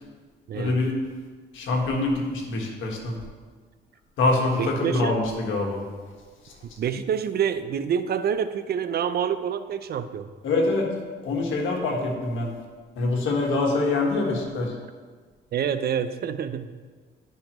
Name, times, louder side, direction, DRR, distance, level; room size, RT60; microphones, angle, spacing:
voice 1, 0.5-0.9 1.5-3.2 4.2-5.8 6.4-6.5 10.4-10.9 11.2-12.5 13.0-14.7, left 2 dB, 80° left, 0 dB, 1.6 m, -25 dB
voice 2, 4.6-5.2 6.8-10.3 15.5-16.7, right 8 dB, 55° right, 11 dB, 0.5 m, -27 dB
11.5 x 5.5 x 3.0 m, 1.5 s
cardioid pair, 90°, 20 cm